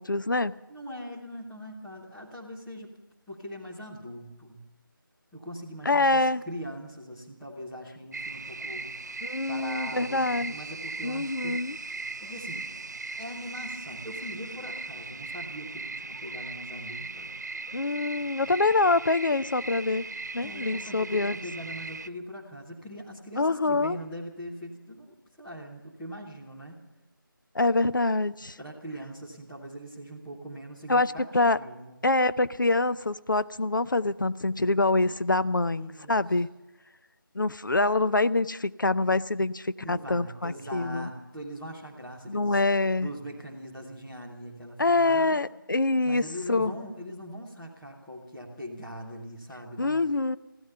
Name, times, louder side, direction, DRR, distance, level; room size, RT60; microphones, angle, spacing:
voice 1, 0.0-0.6 5.9-6.4 9.2-10.5 11.0-11.8 17.7-20.0 20.3-21.3 23.4-24.0 27.5-28.6 30.9-31.6 32.0-36.5 37.3-41.1 42.3-43.1 44.8-46.7 49.8-50.4, left 2 dB, 65° left, 13 dB, 0.7 m, -25 dB
voice 2, 0.7-2.9 3.3-4.6 5.3-8.9 9.5-11.6 12.2-12.7 13.2-17.3 20.4-26.8 28.6-32.0 35.7-36.2 39.8-42.6 43.0-45.4 46.0-50.0, equal, ahead, -9 dB, 0.4 m, -41 dB
sound 1, 8.1-22.1, right 3 dB, 50° right, 0.5 m, -38 dB
15.5 x 13.5 x 6.9 m, 0.99 s
figure-of-eight pair, 165°, 12 cm